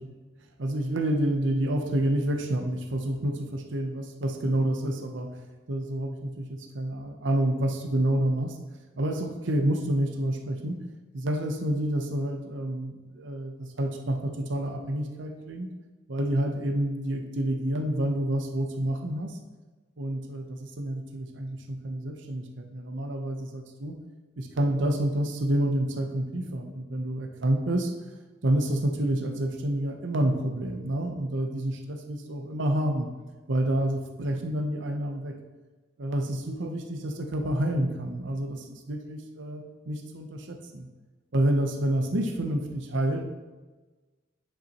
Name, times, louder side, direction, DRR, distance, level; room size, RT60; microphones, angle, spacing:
voice 1, 0.6-5.4 5.7-8.6 9.0-10.8 11.1-15.7 16.1-19.4 20.0-24.0 24.4-27.9 28.4-33.1 33.5-35.3 36.0-40.9 41.3-43.3, right 1 dB, 80° right, 5 dB, 0.8 m, -28 dB
9.9 x 5.3 x 3.0 m, 1.3 s
head